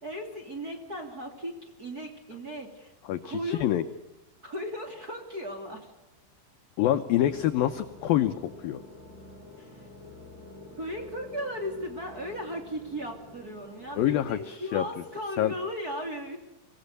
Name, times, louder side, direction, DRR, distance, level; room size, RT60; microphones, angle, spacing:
voice 1, 0.0-2.9 3.2-3.7 4.4-5.9 9.6-9.8 10.3-10.5 10.8-16.4, equal, 25° right, 2 dB, 2.4 m, -36 dB
voice 2, 3.0-3.8 6.8-8.3 8.6-8.8 14.0-14.8 15.4-15.5, left 12 dB, 85° left, 9 dB, 2.0 m, -26 dB
sound 1, 7.2-14.4, left 2 dB, 30° left, 5.2 m, -49 dB
25.5 x 17.5 x 6.8 m, 1.0 s
omnidirectional pair, 5.3 m